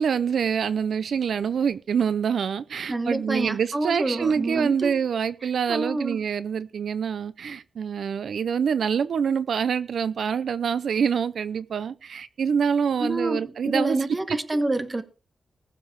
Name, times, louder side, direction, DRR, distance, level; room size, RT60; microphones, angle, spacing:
voice 1, 0.0-14.0 14.3-14.4, right 7 dB, 80° right, 0.6 m, -26 dB
voice 2, 2.9-5.0 5.4-6.2 13.0-15.0, right 2 dB, 20° right, 1.2 m, -28 dB
19.5 x 6.9 x 4.7 m
wide cardioid pair, 160°, 0 cm